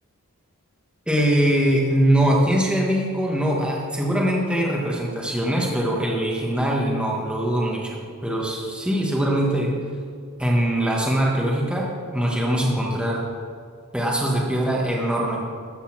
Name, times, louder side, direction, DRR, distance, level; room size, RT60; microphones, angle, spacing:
voice 1, 1.1-9.8 10.4-13.3 13.9-15.4, right 1 dB, 5° right, -3 dB, 1.5 m, -22 dB
13.5 x 5.5 x 7.4 m, 2.1 s
head